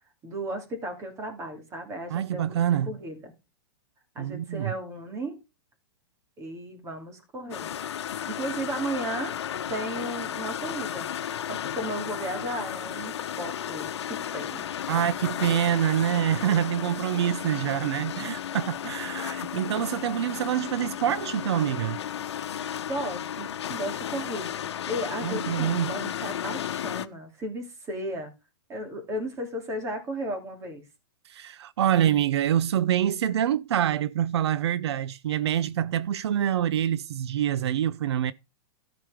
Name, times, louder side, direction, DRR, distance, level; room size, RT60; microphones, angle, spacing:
voice 1, 0.2-3.3 4.1-5.4 6.4-7.7 8.3-9.3 9.7-11.1 11.5-14.7 19.0-19.1 22.9-24.5 24.8-28.3 28.7-30.8, right 1 dB, 20° right, 2.8 m, -35 dB
voice 2, 2.1-2.9 4.2-4.7 14.9-22.0 25.2-25.9 31.3-38.3, right 10 dB, 80° right, 0.6 m, -26 dB
sound 1, 7.5-27.1, left 9 dB, 90° left, 0.9 m, -34 dB
13.0 x 5.0 x 5.0 m
hypercardioid pair, 150°, 14 cm